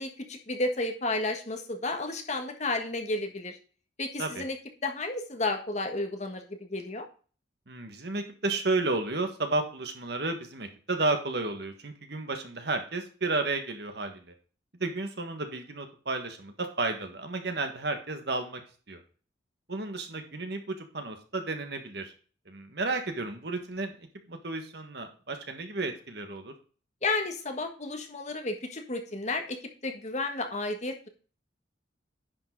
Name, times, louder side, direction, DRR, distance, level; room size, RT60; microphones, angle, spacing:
voice 1, 0.0-3.6 4.0-4.6 4.8-7.1 27.0-29.6 29.8-31.1, left 2 dB, 40° left, 4 dB, 1.4 m, -32 dB
voice 2, 7.7-14.2 14.8-18.6 18.9-19.0 19.7-22.1 22.5-26.5, right 3 dB, 60° right, 6 dB, 1.6 m, -32 dB
10.5 x 5.5 x 4.0 m, 0.39 s
head